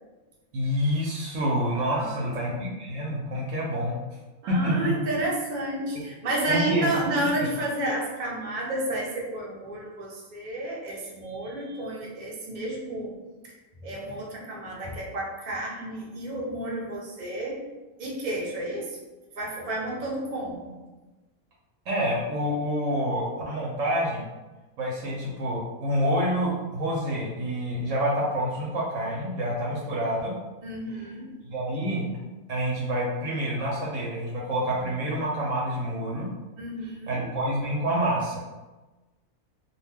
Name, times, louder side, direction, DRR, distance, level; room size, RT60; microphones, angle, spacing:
voice 1, 0.5-4.0 4.5-4.9 6.5-6.9 7.1-7.5 21.9-24.3 24.8-30.3 31.4-32.1 32.5-36.3 37.1-38.4, equal, 70° right, -4 dB, 0.9 m, -27 dB
voice 2, 1.9-2.6 4.4-13.1 13.8-17.6 18.0-19.0 19.4-20.7 30.6-31.3 36.6-37.2, right 1 dB, 55° right, -3 dB, 0.5 m, -31 dB
2.3 x 2.2 x 3.3 m, 1.2 s
omnidirectional pair, 1.4 m